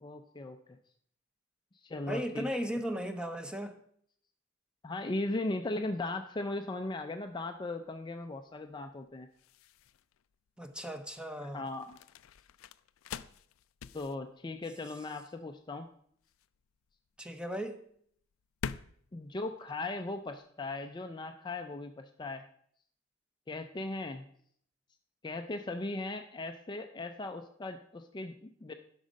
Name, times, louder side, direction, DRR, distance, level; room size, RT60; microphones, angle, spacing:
voice 1, 0.0-0.6 1.8-2.5 4.8-9.3 11.4-12.0 13.9-15.9 19.1-22.4 23.5-24.3 25.2-28.7, left 2 dB, 20° left, 6 dB, 0.4 m, -38 dB
voice 2, 2.1-3.7 10.6-11.6 17.2-17.8, equal, 5° right, 7 dB, 0.8 m, -36 dB
sound 1, 6.6-20.5, left 7 dB, 90° left, 0.4 m, -48 dB
11.0 x 6.2 x 5.2 m, 0.65 s
head